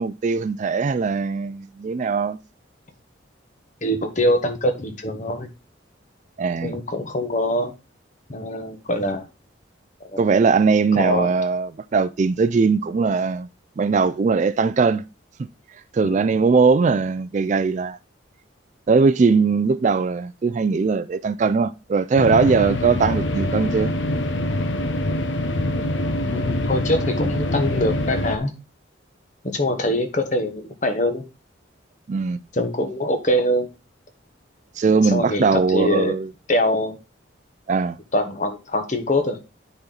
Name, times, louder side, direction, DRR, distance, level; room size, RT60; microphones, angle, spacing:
voice 1, 0.0-2.4 6.4-6.7 10.2-13.5 13.8-15.0 15.9-18.0 18.9-23.9 32.1-32.4 34.8-36.3 37.7-38.0, right 4 dB, 40° right, 0.3 m, -20 dB
voice 2, 3.8-5.5 6.6-7.7 8.3-9.2 10.1-10.2 10.9-11.3 16.0-16.3 26.2-28.5 29.4-31.2 32.5-33.7 35.0-36.1 36.5-37.0 38.1-39.4, left 1 dB, 40° left, 1.2 m, -23 dB
sound 1, 22.1-28.4, left 1 dB, 80° left, 0.8 m, -24 dB
9.6 x 4.3 x 3.9 m
head